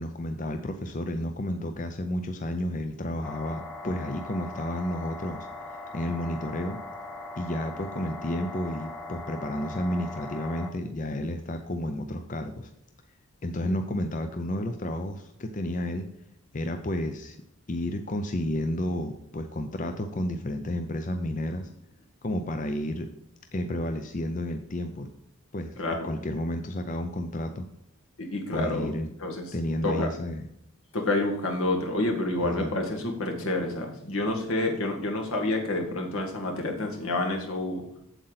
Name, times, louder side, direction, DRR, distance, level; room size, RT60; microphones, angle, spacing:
voice 1, 0.0-6.8 7.4-12.7 13.4-16.1 16.5-17.4 17.7-21.7 22.2-23.1 23.5-25.1 25.5-27.7 28.5-29.1 29.5-30.5 32.4-32.7, left 1 dB, 35° left, 7 dB, 0.5 m, -31 dB
sound 1, 3.2-10.7, left 2 dB, 10° left, 1.0 m, -40 dB
voice 2, 25.8-26.1 28.2-28.9 29.2-29.5 29.8-30.1 30.9-37.8, left 2 dB, 80° left, 2 dB, 1.9 m, -28 dB
7.9 x 7.7 x 4.0 m, 0.76 s
head